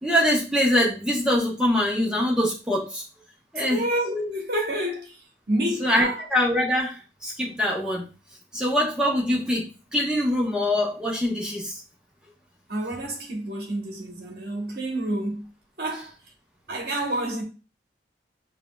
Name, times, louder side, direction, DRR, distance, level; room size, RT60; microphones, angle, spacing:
voice 1, 0.0-3.0 3.5-3.8 5.8-8.0 8.5-9.6 9.9-11.7, left 1 dB, 5° right, 0.9 m, -23 dB
voice 2, 3.7-5.2 5.5-6.2 12.7-15.5 15.8-16.1 16.7-17.4, right 1 dB, 55° right, 1.1 m, -28 dB
5.8 x 2.4 x 2.3 m
head